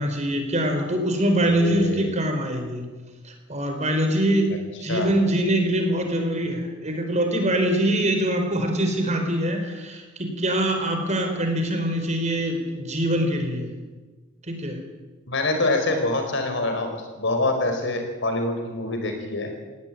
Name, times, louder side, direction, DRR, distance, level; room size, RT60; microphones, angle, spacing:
voice 1, 0.0-2.8 3.2-4.5 4.8-13.7 14.5-14.8, right 1 dB, 35° right, 5 dB, 4.3 m, -24 dB
voice 2, 1.5-2.2 4.5-4.6 4.9-5.1 15.3-19.5, left 2 dB, 65° left, 5 dB, 4.8 m, -25 dB
18.5 x 18.0 x 9.2 m, 1.3 s
head